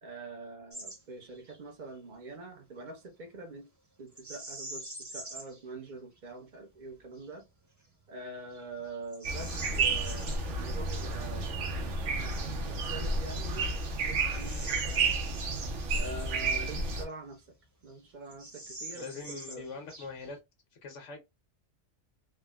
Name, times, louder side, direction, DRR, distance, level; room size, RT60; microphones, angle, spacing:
voice 1, 0.0-3.7 4.0-7.5 8.1-12.4 12.6-13.7 13.9-15.2 15.9-17.5 17.8-19.6, right 2 dB, 45° right, 0.8 m, -45 dB
Bird vocalization bird call bird song, 0.7-1.0 1.3-1.6 4.1-5.6 6.2-6.3 6.9-7.3 7.8-8.0 8.5-10.4 12.5-12.6 13.3-15.7 16.0-16.1 16.8-17.6 17.9-18.0 18.3-20.4, right 2 dB, 20° right, 0.5 m, -45 dB
sound 1, 9.2-17.0, right 3 dB, 80° right, 1.0 m, -31 dB
voice 2, 18.9-20.4 20.8-21.2, left 4 dB, 85° left, 1.2 m, -42 dB
3.5 x 2.0 x 2.2 m
omnidirectional pair, 1.2 m